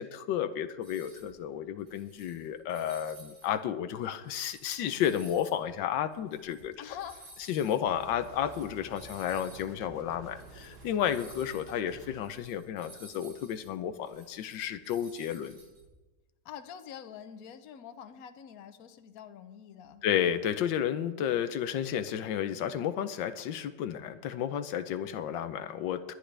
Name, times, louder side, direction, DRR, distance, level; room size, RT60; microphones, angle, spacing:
voice 1, 0.0-6.7 7.5-15.6 20.0-26.1, left 9 dB, 85° left, 11 dB, 1.4 m, -32 dB
sound 1, 0.8-1.3 1.8-3.5 3.9-9.7 10.0-10.1 10.3-15.8, right 1 dB, 85° right, 6.1 m, -55 dB
voice 2, 6.8-7.3 16.4-20.0, left 9 dB, 60° left, 9 dB, 1.2 m, -45 dB
sound 2, 7.9-12.2, right 3 dB, 60° right, 2.7 m, -51 dB
20.5 x 11.5 x 3.4 m, 1.2 s
omnidirectional pair, 2.0 m